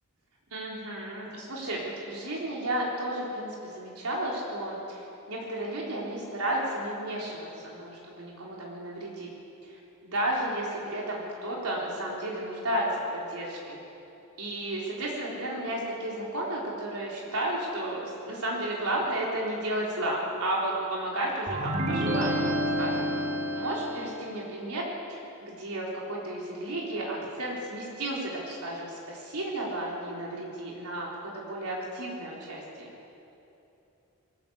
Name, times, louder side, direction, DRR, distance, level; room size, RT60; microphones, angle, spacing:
voice 1, 0.5-9.3 9.6-9.8 10.0-13.8 14.4-22.4 22.8-23.2 23.5-24.8 25.1-32.9, right 1 dB, 75° right, -3 dB, 3.9 m, -33 dB
sound 1, 21.5-24.3, equal, 30° right, 2.3 m, -29 dB
23.0 x 14.0 x 8.1 m, 2.9 s
head